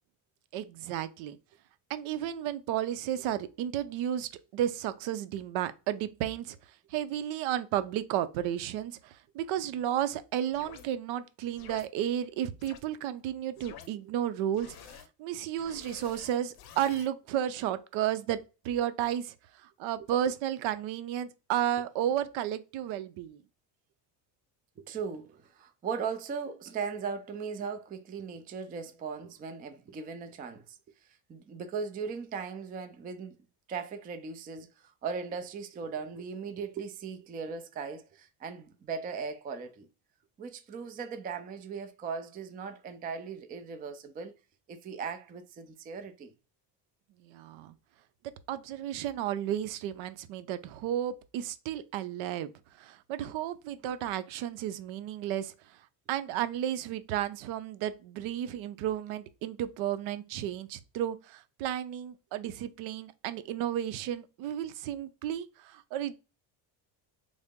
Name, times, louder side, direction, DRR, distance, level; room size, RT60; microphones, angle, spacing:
voice 1, 0.5-1.4 1.9-6.6 6.9-19.3 19.6-23.4 47.2-47.7 48.5-52.5 52.8-55.5 56.1-66.2, right 11 dB, 75° right, 0.6 m, -33 dB
sound 1, 10.5-10.9 11.5-11.9 12.6-12.8 13.5-13.9 14.5-15.1 15.5-17.1, left 8 dB, 50° left, 0.6 m, -49 dB
voice 2, 24.8-30.8 31.3-39.9 40.4-44.3 44.7-46.3, right 5 dB, 20° right, 0.3 m, -38 dB
3.7 x 2.0 x 3.6 m
cardioid pair, 115°, 48 cm